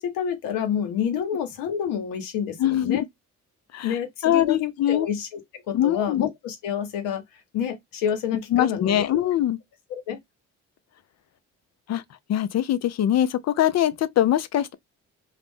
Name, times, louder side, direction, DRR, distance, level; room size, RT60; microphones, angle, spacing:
voice 1, 0.0-3.0 3.8-7.2 7.5-9.2 9.9-10.2, left 8 dB, 90° left, 0.8 m, -28 dB
voice 2, 2.6-3.1 3.7-5.1 5.7-6.2 8.5-9.6 11.9-12.0 12.3-14.7, left 11 dB, 55° left, 0.4 m, -23 dB
2.4 x 2.0 x 3.4 m
supercardioid pair, 60°, 33 cm